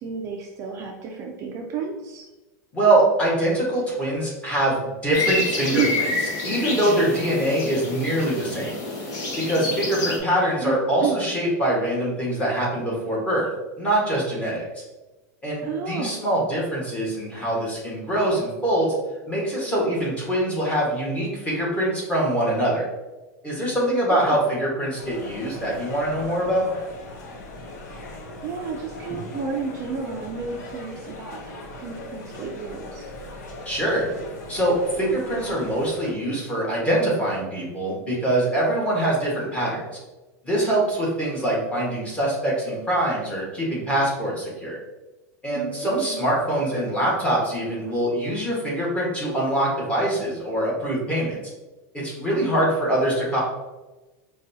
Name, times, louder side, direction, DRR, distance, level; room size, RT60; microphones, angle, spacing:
voice 1, 0.0-2.3 5.7-6.0 10.6-11.2 15.6-16.2 24.1-24.4 27.8-28.1 28.4-33.0 45.5-46.2, right 5 dB, 35° right, 1 dB, 0.4 m, -31 dB
voice 2, 2.7-6.1 6.4-8.7 9.5-13.5 13.8-14.6 15.4-18.9 19.3-22.8 23.4-26.7 33.6-34.0 34.5-39.8 40.4-44.8 45.4-51.4 51.9-53.4, right 1 dB, 15° left, -5 dB, 1.3 m, -24 dB
sound 1, 5.1-10.2, left 2 dB, 40° left, 0.9 m, -28 dB
sound 2, 25.0-36.1, left 2 dB, 75° left, 0.8 m, -39 dB
5.0 x 2.3 x 2.7 m, 1.1 s
supercardioid pair, 145°, 9 cm